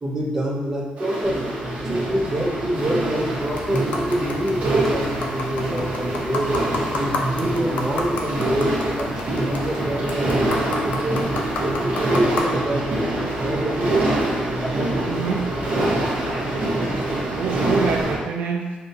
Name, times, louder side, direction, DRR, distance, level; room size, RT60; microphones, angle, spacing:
voice 1, 0.0-1.6 1.8-6.6 6.9-11.2 11.6-13.1 13.4-14.0 14.6-15.0, right 1 dB, 20° right, -4 dB, 0.6 m, -26 dB
sound 1, 1.0-18.1, right 1 dB, 60° right, 0.9 m, -25 dB
sound 2, 3.4-12.4, left 2 dB, 60° left, 0.4 m, -32 dB
voice 2, 15.1-15.6 16.4-16.7 17.3-18.7, right 5 dB, 80° right, 2 dB, 0.4 m, -26 dB
5.3 x 2.3 x 2.7 m, 1.3 s
wide cardioid pair, 175°, 3 cm